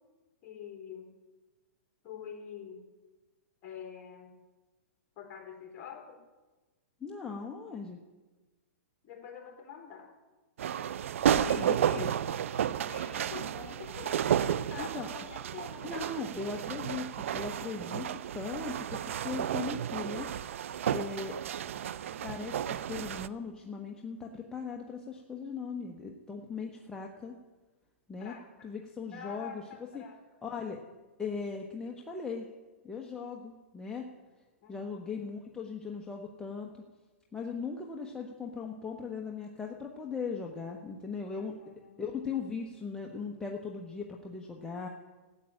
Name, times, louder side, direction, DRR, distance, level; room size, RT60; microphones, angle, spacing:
voice 1, 0.4-1.1 2.0-2.8 3.6-4.3 5.2-6.2 9.0-10.1 11.4-12.1 12.9-16.1 28.2-28.7 29.1-30.2 34.6-35.1 41.3-42.0, left 8 dB, 30° left, 2 dB, 3.6 m, -45 dB
voice 2, 7.0-8.0 11.4-12.1 14.8-15.1 15.8-20.3 20.9-21.4 22.2-27.3 28.1-28.3 28.6-29.6 29.9-30.0 30.4-30.8 31.2-32.5 32.8-34.1 34.7-36.7 37.3-41.5 42.0-44.9, left 5 dB, 10° left, 0 dB, 1.1 m, -39 dB
sound 1, 10.6-23.3, right 9 dB, 70° right, 0.5 m, -32 dB
14.0 x 8.5 x 8.9 m, 1.2 s
hypercardioid pair, 135°, 7 cm